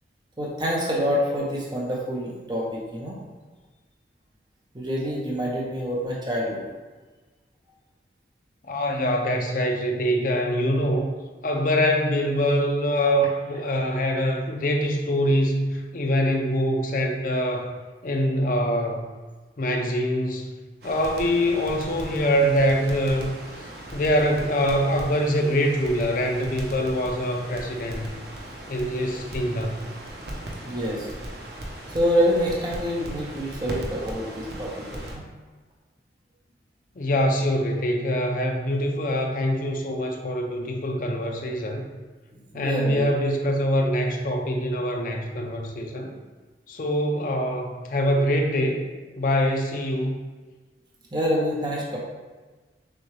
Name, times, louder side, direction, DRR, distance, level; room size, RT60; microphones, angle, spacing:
voice 1, 0.4-3.1 4.7-6.6 13.2-13.3 30.6-31.1 31.9-35.2 42.5-43.0 51.1-52.0, equal, 25° right, -4 dB, 0.6 m, -26 dB
voice 2, 8.6-11.1 11.4-17.8 18.0-19.1 19.6-20.5 20.8-23.3 23.9-28.1 28.7-29.8 37.0-41.9 42.5-46.1 46.7-48.9 49.2-50.2, equal, 50° left, 3 dB, 0.5 m, -24 dB
Crackle, 20.8-35.1, right 1 dB, 65° right, 0.7 m, -38 dB
6.4 x 2.3 x 3.2 m, 1.3 s
head